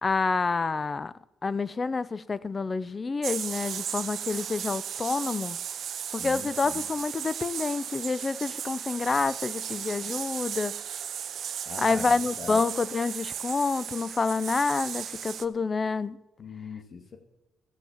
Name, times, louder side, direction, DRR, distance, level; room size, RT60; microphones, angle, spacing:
voice 1, 0.0-5.6 6.1-10.7 11.8-16.2, left 4 dB, 30° left, 0.5 m, -28 dB
sound 1, 3.2-15.5, right 8 dB, 60° right, 0.6 m, -35 dB
voice 2, 6.2-6.9 11.7-12.6 16.4-17.2, left 4 dB, 50° left, 2.1 m, -40 dB
15.5 x 7.3 x 7.2 m
cardioid pair, 90°, 0 cm